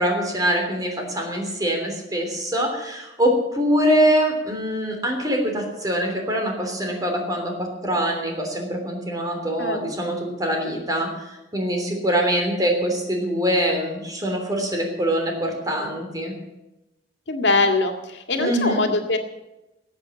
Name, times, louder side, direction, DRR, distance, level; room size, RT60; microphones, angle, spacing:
voice 1, 0.0-16.3 18.4-18.8, equal, 20° right, 2 dB, 3.2 m, -24 dB
voice 2, 17.3-19.2, left 3 dB, 75° left, 5 dB, 2.0 m, -22 dB
14.0 x 8.4 x 8.7 m, 0.97 s
head